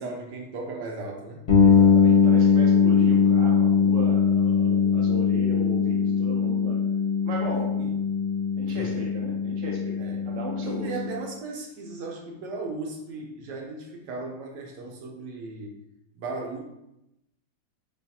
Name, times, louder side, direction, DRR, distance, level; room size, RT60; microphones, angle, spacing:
voice 1, 0.0-1.5 7.8-7.9 8.6-9.0 10.0-10.3 10.6-15.7 16.2-16.6, right 3 dB, 85° right, 0 dB, 1.3 m, -36 dB
sound 1, 1.5-11.2, left 6 dB, 45° left, 0.5 m, -21 dB
voice 2, 1.6-6.8 7.2-7.8 8.6-11.1, equal, 55° right, -2 dB, 1.1 m, -36 dB
5.6 x 2.3 x 2.7 m, 0.86 s
omnidirectional pair, 1.8 m